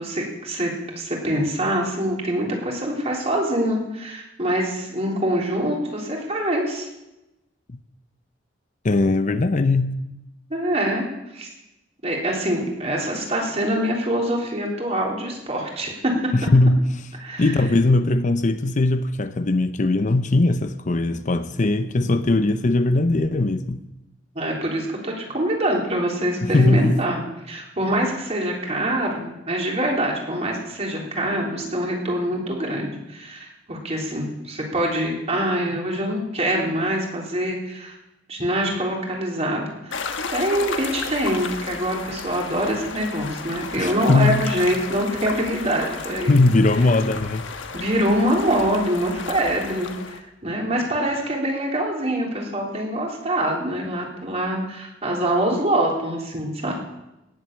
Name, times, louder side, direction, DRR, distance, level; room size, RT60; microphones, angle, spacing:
voice 1, 0.0-6.9 10.5-11.1 11.3-11.5 12.0-16.1 17.2-17.5 22.0-22.1 24.4-38.0 38.3-40.0 40.3-46.4 47.7-56.7, right 1 dB, 35° right, 3.6 m, -25 dB
voice 2, 8.8-9.9 16.3-16.9 17.4-23.8 26.4-27.0 43.8-44.4 46.3-47.5, left 2 dB, 40° left, 0.6 m, -19 dB
sound 1, 39.9-50.2, left 5 dB, 85° left, 1.3 m, -33 dB
18.0 x 7.8 x 7.4 m
head